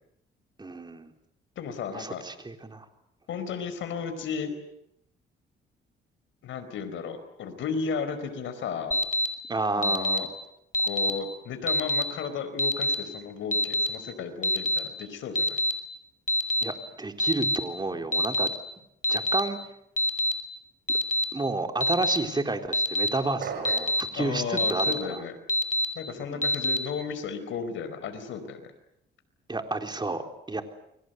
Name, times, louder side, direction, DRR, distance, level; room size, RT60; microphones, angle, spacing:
voice 1, 0.6-1.1 1.9-2.9 9.5-10.3 16.6-18.5 19.1-19.6 21.3-25.2 26.2-26.5 29.5-30.6, right 3 dB, 20° right, 5 dB, 3.8 m, -31 dB
voice 2, 1.6-2.2 3.3-4.5 6.4-9.0 9.8-10.3 10.8-15.6 24.1-25.3 25.9-28.6, left 6 dB, 75° left, 9 dB, 4.7 m, -34 dB
Alarm, 8.9-9.3 9.8-10.2 10.7-11.1 11.7-12.0 12.6-12.9 13.5-13.9 14.4-14.8 15.4-15.7 16.3-16.6 17.2-17.6 18.1-18.5 19.0-19.4 20.0-20.3 20.9-21.2 21.8-22.2 22.7-23.1 23.6-24.0 24.6-24.9 25.5-25.9 26.4-26.8, left 1 dB, 40° left, 5.0 m, -24 dB
sound 1, 23.4-24.0, right 6 dB, 60° right, 5.7 m, -35 dB
29.5 x 23.0 x 8.1 m, 0.79 s
cardioid pair, 90°, 20 cm